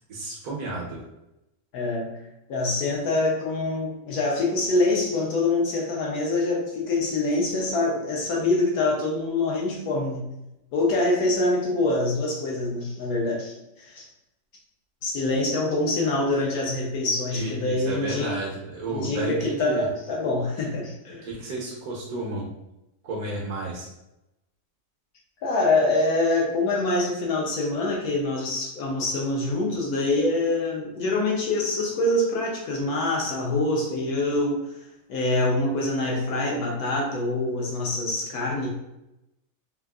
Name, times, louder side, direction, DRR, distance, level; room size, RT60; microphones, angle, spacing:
voice 1, 0.1-1.0 17.3-19.9 21.2-22.5 23.0-23.9, right 2 dB, 65° right, -4 dB, 1.1 m, -32 dB
voice 2, 1.7-2.1 2.5-10.3 10.7-14.0 15.0-18.3 18.9-21.3 25.4-34.7 35.1-38.7, left 2 dB, 65° left, -2 dB, 1.1 m, -25 dB
3.6 x 2.4 x 2.3 m, 0.90 s
omnidirectional pair, 1.9 m